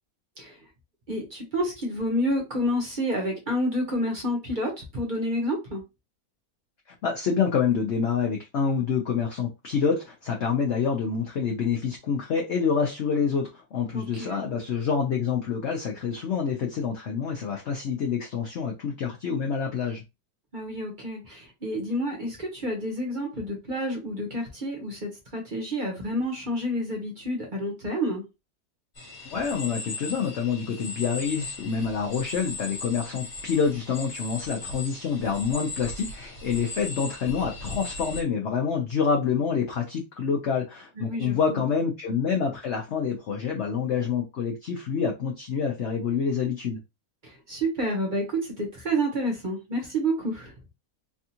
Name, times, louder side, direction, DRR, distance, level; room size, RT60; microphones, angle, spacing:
voice 1, 1.1-5.8 13.9-14.4 20.5-28.3 41.0-41.6 47.2-50.5, equal, 40° right, 0.9 m, -29 dB
voice 2, 7.0-20.0 29.2-46.8, left 6 dB, 60° left, 0.8 m, -27 dB
sound 1, 29.0-38.2, left 2 dB, 35° left, 1.0 m, -38 dB
3.5 x 2.3 x 2.7 m
omnidirectional pair, 1.7 m